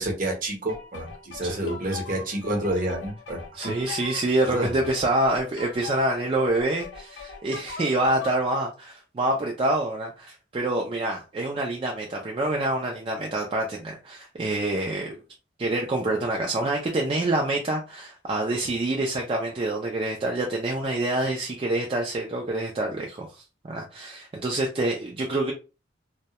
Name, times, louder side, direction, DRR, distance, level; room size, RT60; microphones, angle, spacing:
voice 1, 0.0-3.8 4.5-4.8, right 1 dB, 45° right, 0.8 m, -29 dB
sound 1, 0.7-8.5, left 5 dB, 70° left, 0.6 m, -41 dB
voice 2, 3.5-15.1 15.6-25.5, right 2 dB, 30° right, 0.3 m, -26 dB
2.2 x 2.0 x 2.8 m
head